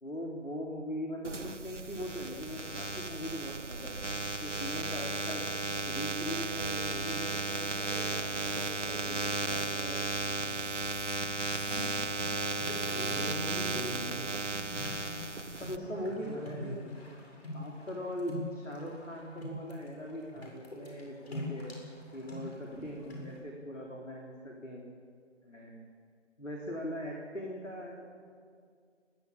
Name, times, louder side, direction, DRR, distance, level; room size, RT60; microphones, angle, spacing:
voice 1, 0.0-4.0 4.4-5.5 5.9-10.6 15.6-16.8 17.5-21.8 22.1-24.9 25.4-25.8 26.4-28.1, equal, 85° left, -1 dB, 3.8 m, -41 dB
sound 1, 1.2-15.8, right 2 dB, 75° right, 1.4 m, -35 dB
sound 2, 11.7-23.4, left 1 dB, 55° left, 7.8 m, -45 dB
voice 2, 12.4-14.4 16.2-16.9, equal, ahead, -6 dB, 3.0 m, -41 dB
28.0 x 12.5 x 8.7 m, 2.2 s
figure-of-eight pair, 150°, 36 cm